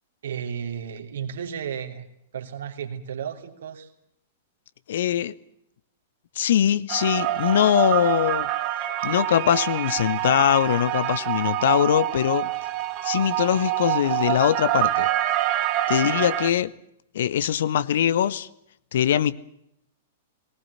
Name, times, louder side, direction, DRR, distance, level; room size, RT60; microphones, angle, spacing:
voice 1, 0.2-2.1 2.3-3.9, right 8 dB, 60° right, 5 dB, 3.0 m, -33 dB
voice 2, 4.9-5.3 6.4-8.5 9.0-12.5 13.0-15.1 15.9-16.7 17.1-18.5 18.9-19.4, left 10 dB, 55° left, 17 dB, 0.9 m, -22 dB
sound 1, 6.9-16.5, right 14 dB, 40° right, 1.5 m, -26 dB
19.0 x 19.0 x 9.7 m, 0.75 s
figure-of-eight pair, 100°, 0 cm